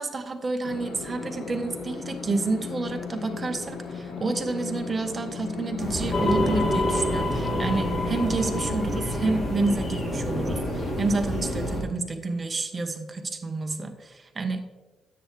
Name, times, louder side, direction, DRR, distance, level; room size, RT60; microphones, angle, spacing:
voice 1, 0.0-14.6, right 3 dB, 30° right, 6 dB, 1.2 m, -29 dB
sound 1, 0.6-11.7, left 5 dB, 70° left, 1.2 m, -37 dB
sound 2, 5.8-11.8, equal, 40° left, 3.0 m, -30 dB
sound 3, 6.1-10.5, left 1 dB, 20° left, 1.7 m, -29 dB
10.0 x 8.1 x 3.3 m, 1.2 s
cardioid pair, 90°, 0 cm